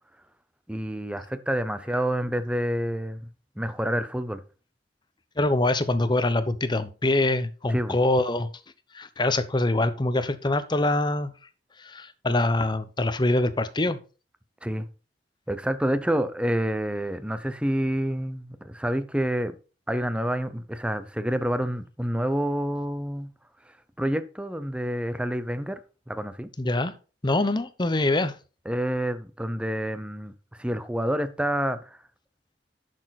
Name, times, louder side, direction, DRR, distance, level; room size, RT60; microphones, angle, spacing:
voice 1, 0.7-3.3 3.6-4.4 7.7-8.0 14.6-14.9 15.5-19.5 19.9-23.3 24.0-25.8 26.1-26.5 28.7-30.3 30.6-31.9, equal, 5° right, 0.8 m, -28 dB
voice 2, 5.4-8.5 8.9-11.3 11.8-14.0 26.6-26.9 27.2-28.3, left 2 dB, 25° left, 0.8 m, -24 dB
10.5 x 6.6 x 4.1 m
head